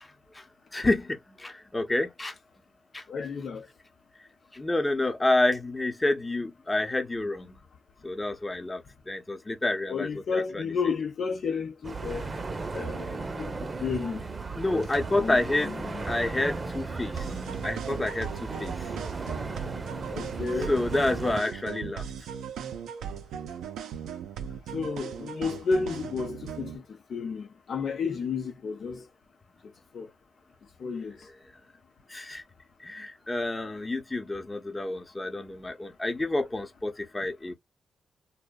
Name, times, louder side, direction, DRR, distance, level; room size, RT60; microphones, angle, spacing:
voice 1, 0.0-0.4 0.7-2.3 2.9-3.1 4.5-7.6 8.0-10.7 14.5-15.7 16.1-17.3 17.6-18.9 20.7-22.1 32.1-32.4 32.8-37.5, left 2 dB, 25° left, 0.8 m, -29 dB
voice 2, 3.1-3.6 9.9-12.3 12.7-13.5 13.8-14.2 14.7-16.0 20.1-20.8 24.7-26.8 27.1-29.0 29.9-30.1 30.8-31.2, left 5 dB, 65° left, 0.6 m, -32 dB
sound 1, 11.8-21.4, right 3 dB, 40° right, 0.6 m, -36 dB
sound 2, 17.2-26.8, right 8 dB, 85° right, 0.4 m, -38 dB
2.6 x 2.1 x 2.2 m
supercardioid pair, 50°, 0 cm